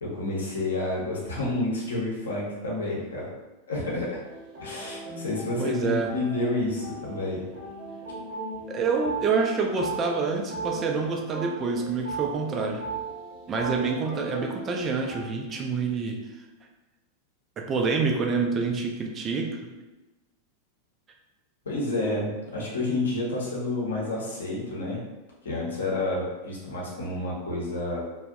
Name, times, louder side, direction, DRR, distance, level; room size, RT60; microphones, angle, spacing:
voice 1, 0.0-3.3 3.7-4.2 4.6-7.4 21.6-25.0 25.4-28.0, left 2 dB, 65° left, -3 dB, 0.7 m, -29 dB
sound 1, 4.2-15.3, right 3 dB, 45° right, 0.9 m, -38 dB
voice 2, 5.6-6.1 8.7-12.9 13.5-16.2 17.6-19.7, right 4 dB, 25° right, 2 dB, 0.3 m, -27 dB
2.5 x 2.0 x 2.4 m, 1.1 s
figure-of-eight pair, 90°, 0 cm